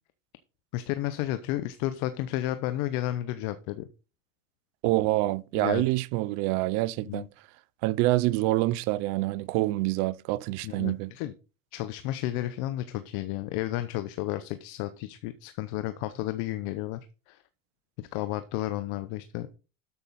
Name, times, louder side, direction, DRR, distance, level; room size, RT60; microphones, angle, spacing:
voice 1, 0.7-3.9 5.6-5.9 7.1-7.3 10.6-11.3 11.7-17.4 18.0-19.6, left 14 dB, 45° left, 0.8 m, -32 dB
voice 2, 4.8-7.2 7.8-11.1, right 18 dB, 45° right, 0.6 m, -26 dB
13.0 x 5.8 x 4.1 m
hypercardioid pair, 115°, 39 cm